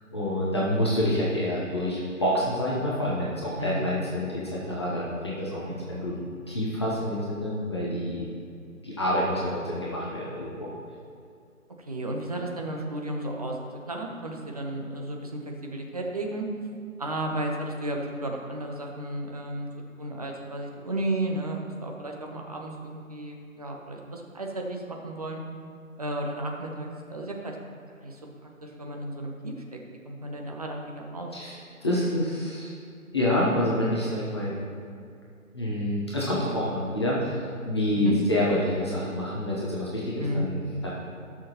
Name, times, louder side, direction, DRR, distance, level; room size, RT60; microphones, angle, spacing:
voice 1, 0.1-6.2 6.5-8.2 8.8-10.7 31.3-32.8 33.1-34.5 35.5-40.9, left 1 dB, 20° left, -6 dB, 1.0 m, -27 dB
voice 2, 3.6-4.0 5.7-6.3 11.8-16.5 17.0-19.7 20.0-25.4 26.0-27.6 28.0-28.2 28.6-29.5 30.0-31.3 37.9-38.1 40.2-40.6, right 1 dB, 25° right, 0 dB, 0.9 m, -33 dB
18.0 x 6.3 x 3.0 m, 2.3 s
figure-of-eight pair, 155°, 42 cm